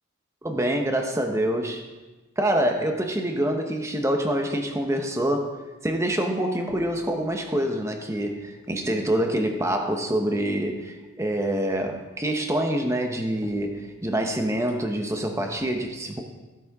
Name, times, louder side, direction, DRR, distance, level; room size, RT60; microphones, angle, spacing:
voice 1, 0.4-1.8 2.4-5.5 5.8-16.2, right 1 dB, 15° right, 4 dB, 0.9 m, -26 dB
14.0 x 8.5 x 3.6 m, 1.2 s
head